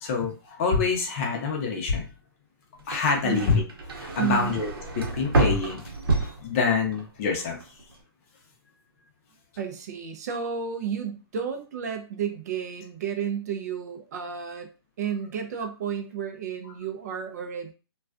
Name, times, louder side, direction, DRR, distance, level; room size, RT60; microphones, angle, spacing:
voice 1, 0.0-2.1 2.9-3.6 4.0-4.7 5.0-5.8 6.1-7.6, left 4 dB, 30° left, 2 dB, 0.6 m, -26 dB
sound 1, 2.8-7.1 7.4-7.9, right 2 dB, 65° right, 0.8 m, -28 dB
voice 2, 4.2-4.5 9.6-14.7 15.0-17.7, right 7 dB, 40° right, 5 dB, 0.4 m, -32 dB
2.3 x 2.2 x 2.4 m, 0.34 s
hypercardioid pair, 150°, 13 cm